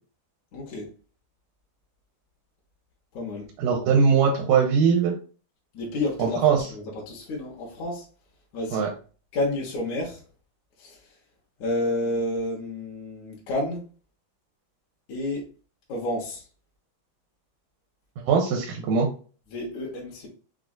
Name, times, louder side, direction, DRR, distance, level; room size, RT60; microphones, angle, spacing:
voice 1, 0.5-0.9 3.1-3.5 5.7-8.1 8.5-8.9 9.3-10.2 10.8-11.0 11.6-13.8 15.1-15.5 15.9-16.4 19.5-20.3, left 1 dB, 65° left, 2.1 m, -30 dB
voice 2, 3.6-5.2 6.2-6.7 8.7-8.9 18.3-19.1, right 6 dB, 85° right, 2.2 m, -21 dB
6.0 x 2.4 x 2.4 m
omnidirectional pair, 3.8 m